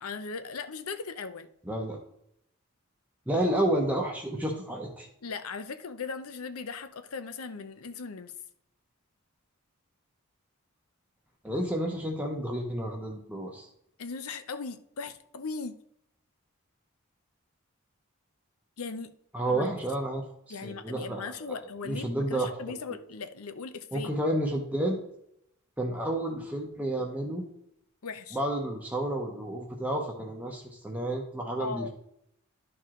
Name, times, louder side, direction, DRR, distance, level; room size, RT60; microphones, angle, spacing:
voice 1, 0.0-1.5 5.2-8.3 14.0-15.8 18.8-19.1 19.5-19.7 20.5-24.1 28.0-28.4 31.6-31.9, left 4 dB, 80° left, 11 dB, 0.7 m, -38 dB
voice 2, 1.6-2.0 3.3-5.1 11.4-13.7 19.3-21.6 21.8-22.7 23.9-25.0 25.8-27.4 28.3-31.9, right 1 dB, 5° right, 0 dB, 0.8 m, -31 dB
11.5 x 4.7 x 3.7 m, 0.74 s
head